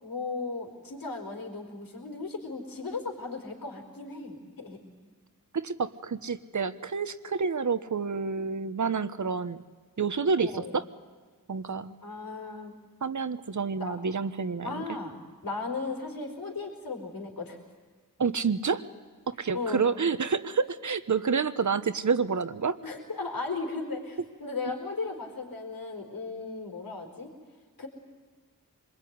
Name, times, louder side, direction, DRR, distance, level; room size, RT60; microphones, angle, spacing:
voice 1, 0.0-4.8 10.4-10.7 12.0-12.7 13.8-14.0 14.6-15.1 15.4-17.6 19.5-19.8 22.8-27.3 27.8-27.9, left 3 dB, 80° left, 2 dB, 4.6 m, -36 dB
voice 2, 5.5-9.6 10.0-10.8 11.5-11.9 13.0-14.8 18.2-18.8 19.3-22.7, right 5 dB, 55° right, 12 dB, 1.3 m, -28 dB
25.5 x 21.5 x 9.6 m, 1.5 s
cardioid pair, 65°, 34 cm